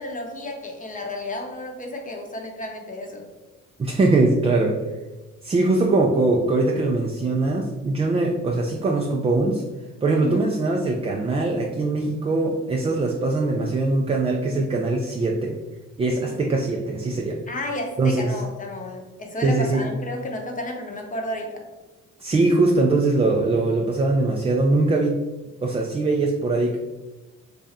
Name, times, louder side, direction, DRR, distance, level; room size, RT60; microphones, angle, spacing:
voice 1, 0.0-3.3 10.2-10.4 16.1-16.4 17.5-21.6, left 1 dB, 25° left, 2 dB, 0.8 m, -32 dB
voice 2, 3.8-4.8 5.4-9.6 10.0-15.5 16.0-17.4 18.0-18.3 19.4-19.8 22.2-25.2 25.6-26.8, right 2 dB, 20° right, 1 dB, 0.3 m, -21 dB
3.2 x 2.6 x 3.5 m, 1.1 s
cardioid pair, 90°, 30 cm